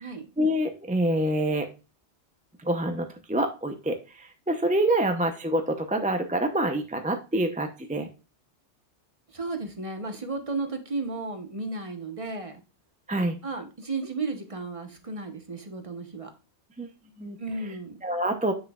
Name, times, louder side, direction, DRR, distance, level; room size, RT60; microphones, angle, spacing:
voice 1, 0.4-1.7 2.6-8.1 13.1-13.4 16.8-16.9 17.2-17.4 18.0-18.5, right 1 dB, 10° right, 6 dB, 0.5 m, -26 dB
voice 2, 9.3-12.6 13.4-16.3 17.4-18.0, right 3 dB, 30° right, 6 dB, 1.0 m, -34 dB
7.4 x 6.2 x 2.3 m, 0.31 s
omnidirectional pair, 1.2 m